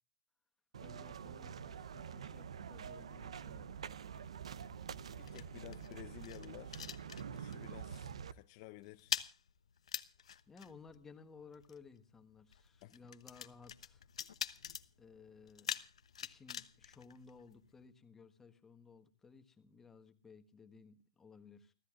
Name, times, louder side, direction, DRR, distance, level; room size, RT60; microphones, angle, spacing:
sound 1, 0.7-8.3, right 7 dB, 85° right, 0.8 m, -47 dB
voice 1, 0.8-3.8 10.5-14.0 15.0-15.7 16.2-21.7, left 5 dB, 10° left, 1.4 m, -58 dB
sound 2, 4.3-7.7 7.9-8.2 8.5-17.9, left 8 dB, 85° left, 1.0 m, -46 dB
voice 2, 5.0-6.9 7.3-9.2 12.8-12.9, left 18 dB, 40° left, 0.7 m, -53 dB
29.5 x 13.5 x 2.5 m
hypercardioid pair, 145°, 3 cm